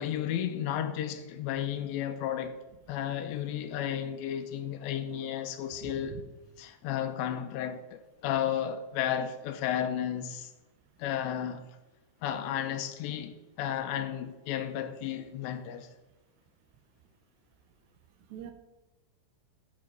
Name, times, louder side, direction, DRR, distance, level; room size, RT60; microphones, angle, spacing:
voice 1, 0.0-2.6 2.9-6.2 6.6-10.5 11.0-11.7 12.2-15.9, left 10 dB, 85° left, 2.7 m, -33 dB
voice 2, 5.8-6.2 18.3-18.5, right 9 dB, 80° right, 2.8 m, -43 dB
11.0 x 4.7 x 5.2 m
omnidirectional pair, 5.2 m